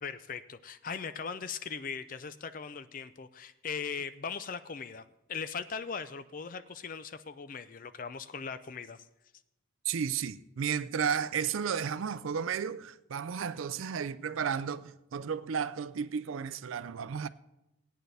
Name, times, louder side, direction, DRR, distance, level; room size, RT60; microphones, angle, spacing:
voice 1, 0.0-5.0 5.3-9.0, left 6 dB, 40° left, 0.4 m, -39 dB
voice 2, 9.8-17.3, right 7 dB, 80° right, 0.4 m, -33 dB
17.0 x 9.2 x 3.3 m
head